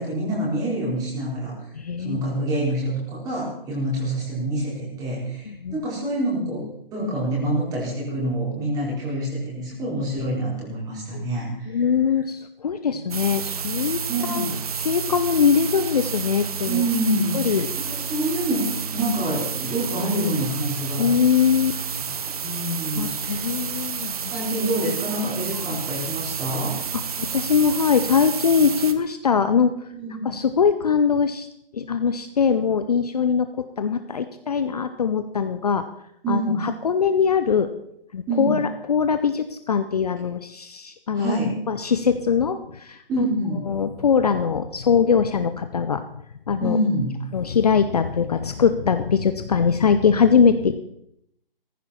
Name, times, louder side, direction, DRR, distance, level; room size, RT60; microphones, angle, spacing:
voice 1, 0.0-1.5 2.0-11.7 14.1-14.6 16.6-17.6 17.9-21.1 22.0-22.1 22.4-23.4 24.3-26.7 29.9-30.3 36.2-36.6 38.3-38.6 41.1-41.6 43.1-43.6 46.6-47.1, right 1 dB, 10° right, -4 dB, 4.5 m, -26 dB
voice 2, 1.7-2.2 5.5-5.8 11.1-11.2 11.7-14.5 14.8-16.8 17.3-17.7 21.0-21.7 22.9-24.3 25.6-25.8 26.9-29.9 30.2-31.5 31.7-35.9 36.3-37.7 38.1-41.4 41.7-43.3 43.7-46.8 47.3-50.8, left 6 dB, 40° left, 10 dB, 0.8 m, -22 dB
sound 1, 13.1-28.9, right 6 dB, 40° right, 1.1 m, -30 dB
17.0 x 14.5 x 4.3 m, 0.75 s
figure-of-eight pair, 145°, 29 cm